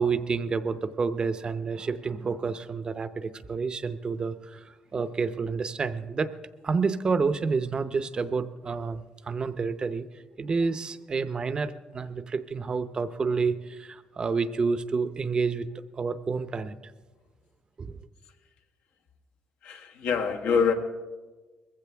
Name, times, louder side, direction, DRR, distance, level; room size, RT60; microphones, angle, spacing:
voice 1, 0.0-6.3 6.6-15.7 15.9-16.8 17.8-18.0, right 4 dB, 30° right, 12 dB, 0.7 m, -29 dB
voice 2, 19.6-20.7, left 6 dB, 85° left, 3 dB, 1.4 m, -25 dB
20.5 x 15.5 x 3.4 m, 1.3 s
cardioid pair, 110°, 3 cm